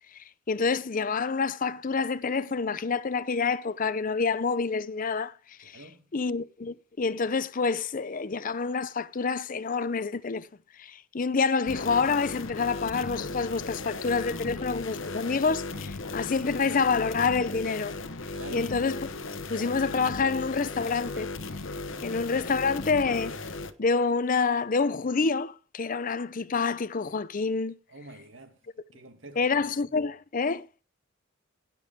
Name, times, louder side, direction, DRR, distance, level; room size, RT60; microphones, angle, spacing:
voice 1, 0.1-5.8 6.1-10.5 10.8-18.0 18.5-19.0 19.5-21.3 22.0-23.4 23.8-27.7 29.4-30.8, left 4 dB, 40° left, 0.6 m, -27 dB
voice 2, 5.6-6.0 18.3-18.7 21.9-22.2 27.9-28.6 28.9-29.5, right 2 dB, 65° right, 2.2 m, -46 dB
sound 1, 11.7-23.7, left 3 dB, 65° left, 1.0 m, -37 dB
17.0 x 6.9 x 3.6 m
head